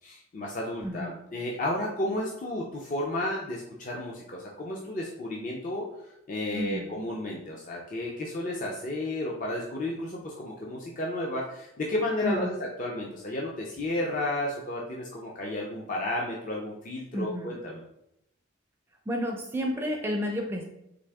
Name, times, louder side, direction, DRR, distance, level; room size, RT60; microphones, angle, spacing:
voice 1, 0.0-5.8 6.3-17.8, left 1 dB, 40° left, -2 dB, 0.5 m, -32 dB
voice 2, 0.8-1.2 6.5-6.9 12.2-12.6 17.1-17.5 19.1-20.6, equal, 10° right, 1 dB, 0.4 m, -31 dB
3.8 x 3.1 x 3.4 m, 0.81 s
head